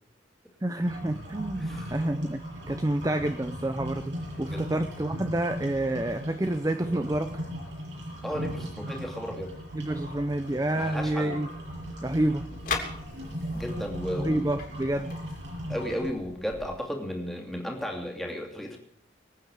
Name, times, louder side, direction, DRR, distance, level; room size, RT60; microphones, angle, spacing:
voice 1, 0.6-4.1 4.4-7.3 9.7-11.5 12.0-12.5 14.2-15.1, right 1 dB, 20° right, 9 dB, 0.6 m, -28 dB
sound 1, 0.8-16.1, equal, 75° right, 7.0 m, -37 dB
voice 2, 1.6-2.0 4.5-4.8 8.2-9.6 10.7-11.4 13.5-14.5 15.7-18.8, equal, ahead, 0 dB, 2.8 m, -34 dB
sound 2, 11.6-16.7, left 4 dB, 50° left, 3.6 m, -39 dB
25.0 x 9.0 x 4.9 m, 0.68 s
head